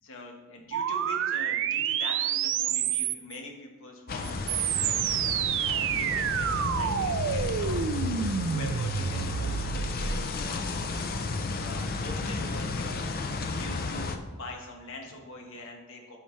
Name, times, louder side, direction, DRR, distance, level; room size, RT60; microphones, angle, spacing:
voice 1, 0.0-5.4 5.7-16.2, left 1 dB, 65° left, 2 dB, 1.3 m, -44 dB
sound 1, 0.7-3.4 4.2-10.2, right 9 dB, 60° right, 0.4 m, -29 dB
sound 2, 4.1-14.2, left 3 dB, 45° left, 0.5 m, -33 dB
8.7 x 5.6 x 3.2 m, 1.2 s
head